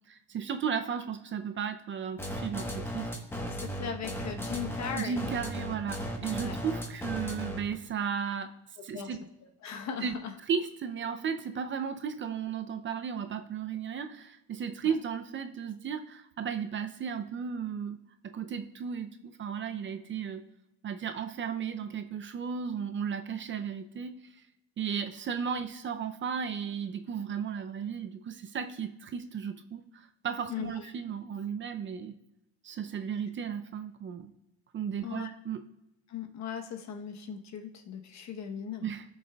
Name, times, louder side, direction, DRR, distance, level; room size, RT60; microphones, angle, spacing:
voice 1, 0.1-3.1 5.0-8.5 8.8-9.2 10.0-10.1 10.5-20.4 20.8-24.4 24.8-32.2 32.6-34.3 34.7-35.6 38.8-39.0, right 7 dB, 35° right, 8 dB, 0.5 m, -35 dB
sound 1, 2.2-7.7, equal, 5° left, 1.1 m, -36 dB
voice 2, 3.5-5.2 6.4-6.6 8.9-9.2 9.6-10.3 14.8-14.9 30.5-30.9 35.0-35.3 36.1-38.8, left 7 dB, 55° left, 5 dB, 1.0 m, -38 dB
15.5 x 6.5 x 2.3 m, 0.90 s
cardioid pair, 145°, 33 cm